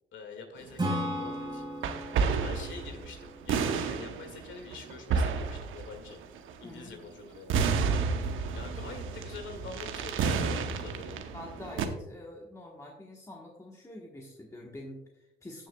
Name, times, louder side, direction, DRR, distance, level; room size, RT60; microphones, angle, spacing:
voice 1, 0.1-1.6 2.4-6.2 6.6-7.7 8.5-11.2, left 4 dB, 70° left, 4 dB, 2.0 m, -45 dB
sound 1, 0.7-0.9 1.8-6.6 7.3-11.9, right 5 dB, 80° right, 0.9 m, -31 dB
Acoustic guitar / Strum, 0.8-4.4, equal, 20° right, 2.6 m, -36 dB
voice 2, 6.6-6.9 10.5-10.6 11.3-15.7, left 1 dB, 15° left, -1 dB, 1.2 m, -46 dB
15.0 x 6.4 x 2.3 m, 0.92 s
cardioid pair, 90°, 20 cm